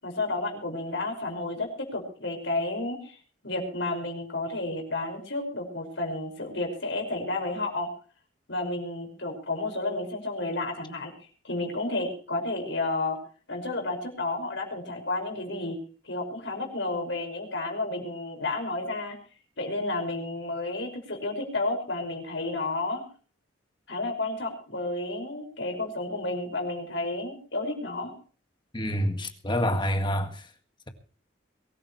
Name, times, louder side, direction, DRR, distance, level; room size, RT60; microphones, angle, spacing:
voice 1, 0.0-3.2 3.4-7.9 8.5-13.2 13.5-15.8 16.0-19.2 19.6-23.0 23.9-28.1, left 2 dB, 65° left, 5.7 m, -31 dB
voice 2, 28.7-30.5, equal, 25° left, 1.9 m, -27 dB
23.0 x 14.5 x 3.2 m
head